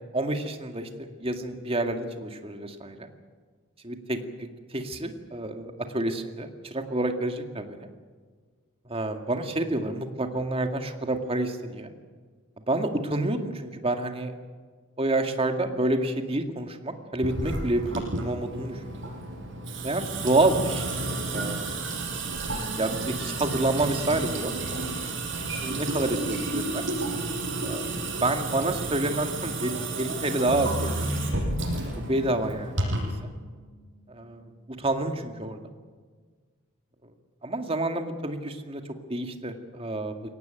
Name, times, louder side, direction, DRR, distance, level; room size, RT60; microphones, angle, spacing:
voice 1, 0.1-0.9 1.2-3.1 3.8-4.2 4.7-7.9 8.9-11.9 12.7-14.3 15.0-19.1 19.8-20.9 21.2-21.7 22.8-24.5 25.6-26.8 27.6-27.9 28.2-31.1 31.8-33.3 34.1-34.5 34.8-35.6 37.4-38.8 39.1-40.1, right 2 dB, 25° right, 6 dB, 2.1 m, -28 dB
Water tap faucet / Sink (filling or washing) / Drip, 17.2-33.2, right 2 dB, 60° right, 6.8 m, -32 dB
sound 1, 30.5-33.7, equal, 90° left, 7.9 m, -34 dB
23.0 x 18.0 x 9.2 m, 1.5 s
head